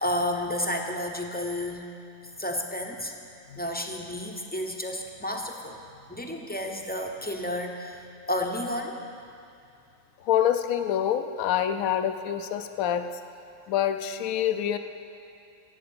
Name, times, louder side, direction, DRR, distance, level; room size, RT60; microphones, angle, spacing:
voice 1, 0.0-1.9 2.4-3.1 3.6-5.8 6.1-9.0, left 1 dB, 10° left, 2 dB, 0.6 m, -31 dB
voice 2, 10.2-13.1 13.7-14.8, left 10 dB, 70° left, 9 dB, 1.1 m, -26 dB
12.5 x 7.8 x 8.7 m, 2.5 s
omnidirectional pair, 1.5 m